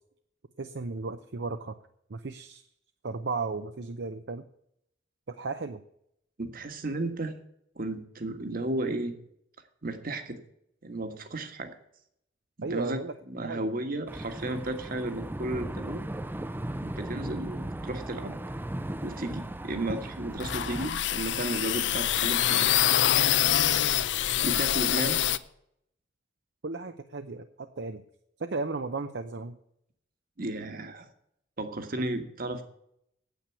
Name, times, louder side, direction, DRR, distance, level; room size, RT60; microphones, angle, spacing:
voice 1, 0.6-1.7 2.1-2.7 3.0-4.4 5.3-5.8 12.6-13.1 13.4-13.7 26.6-28.0 28.4-29.6, right 3 dB, 65° right, 9 dB, 0.7 m, -35 dB
voice 2, 6.4-7.3 7.7-9.2 9.8-10.4 10.8-11.7 12.6-13.0 13.3-16.0 16.8-18.3 19.0-22.7 24.4-25.2 30.4-31.1 31.6-32.6, right 2 dB, 50° right, 8 dB, 1.5 m, -34 dB
sound 1, 14.1-20.9, right 1 dB, 10° right, 0.5 m, -37 dB
sound 2, 20.3-25.4, left 11 dB, 70° left, 0.6 m, -25 dB
9.3 x 8.4 x 8.3 m, 0.74 s
head